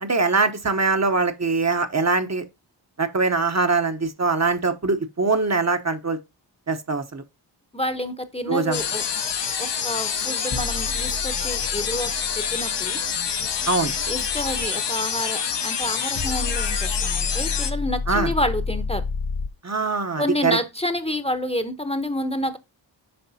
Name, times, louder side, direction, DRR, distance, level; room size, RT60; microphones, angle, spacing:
voice 1, 0.0-2.4 3.0-6.2 6.7-7.2 8.5-8.8 13.7-13.9 18.1-18.3 19.6-20.6, right 4 dB, 35° right, 0.9 m, -22 dB
voice 2, 7.7-9.0 9.6-13.0 14.0-19.0 20.2-22.6, left 1 dB, 15° left, 0.9 m, -29 dB
sound 1, 8.7-17.7, left 7 dB, 65° left, 1.0 m, -27 dB
sound 2, 10.5-14.7 16.2-19.5, left 4 dB, 40° left, 0.8 m, -31 dB
7.8 x 5.3 x 2.7 m
cardioid pair, 45°, 45 cm